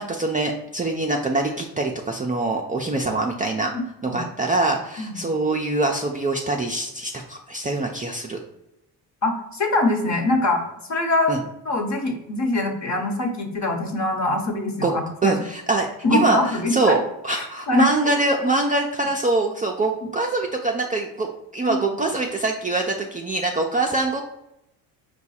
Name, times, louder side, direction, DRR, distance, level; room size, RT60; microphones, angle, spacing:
voice 1, 0.0-3.7 4.0-8.4 11.3-11.4 14.8-14.9 15.2-17.0 17.2-24.2, right 2 dB, 20° right, 0 dB, 0.4 m, -24 dB
voice 2, 9.2-11.4 11.6-15.3 16.0-17.0 17.3-17.9 21.7-21.8, left 2 dB, 35° left, 4 dB, 1.1 m, -23 dB
4.6 x 2.3 x 4.2 m, 0.87 s
supercardioid pair, 70°, 47 cm